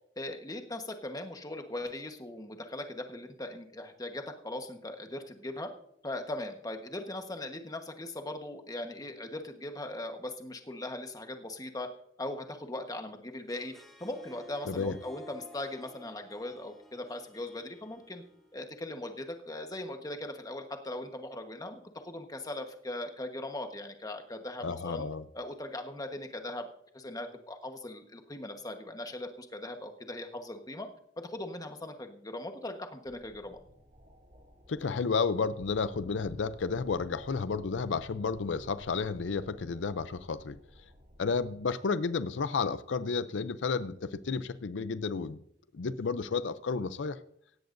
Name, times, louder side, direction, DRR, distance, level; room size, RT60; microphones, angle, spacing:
voice 1, 0.2-5.7 6.0-11.9 12.2-13.7 14.0-18.2 18.5-25.0 25.3-26.7 26.9-30.9 31.2-33.6, left 1 dB, 20° left, 5 dB, 1.2 m, -39 dB
Harp, 13.3-18.8, left 1 dB, ahead, 2.4 m, -54 dB
voice 2, 24.6-25.2 34.7-40.6 41.2-45.4 45.7-47.2, left 5 dB, 85° left, 14 dB, 0.5 m, -32 dB
sound 1, 33.0-41.6, equal, 45° right, 2.7 m, -54 dB
17.0 x 15.5 x 2.6 m, 0.73 s
head